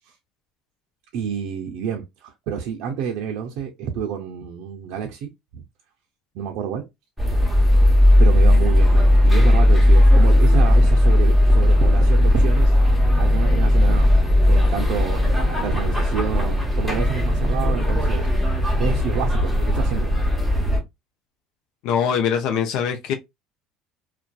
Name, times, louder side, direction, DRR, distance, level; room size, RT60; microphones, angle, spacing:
voice 1, 1.1-5.6 6.3-6.9 8.2-12.8 13.2-14.1 14.4-18.3 18.8-20.1, right 7 dB, 70° right, 0.4 m, -29 dB
sound 1, 7.2-20.8, left 1 dB, ahead, 1.0 m, -16 dB
voice 2, 21.8-23.1, left 7 dB, 70° left, 0.5 m, -22 dB
2.5 x 2.2 x 2.2 m
supercardioid pair, 105°, 0 cm